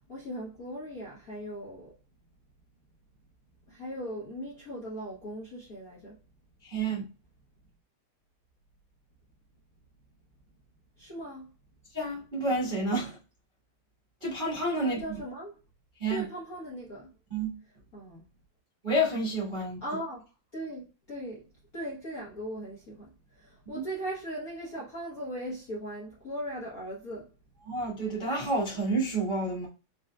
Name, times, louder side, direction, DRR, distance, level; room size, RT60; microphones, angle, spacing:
voice 1, 0.1-1.9 3.7-6.1 11.0-11.5 14.8-15.6 16.1-17.1 17.9-18.2 19.8-20.2 20.5-21.4 21.7-27.3, right 1 dB, 60° left, 0.9 m, -38 dB
voice 2, 6.6-7.0 11.9-13.2 14.2-15.0 16.0-16.3 17.3-17.6 18.8-19.8 23.7-23.8 27.6-29.7, right 1 dB, 70° right, 0.4 m, -29 dB
5.0 x 4.1 x 2.2 m
omnidirectional pair, 3.4 m